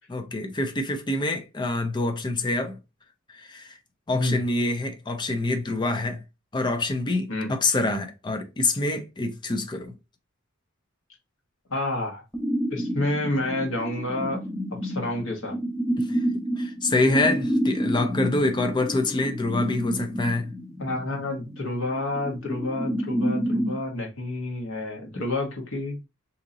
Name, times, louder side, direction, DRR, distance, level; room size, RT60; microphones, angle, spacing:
voice 1, 0.1-2.8 3.4-3.7 4.1-6.2 6.5-9.9 16.0-16.2 16.6-20.5, left 2 dB, 20° left, 0.5 m, -26 dB
voice 2, 11.7-12.2 12.7-14.4 14.7-15.6 16.9-17.0 20.8-26.1, left 2 dB, 80° left, 1.2 m, -29 dB
sound 1, 12.3-23.8, equal, 5° left, 0.9 m, -29 dB
2.8 x 2.7 x 3.7 m
head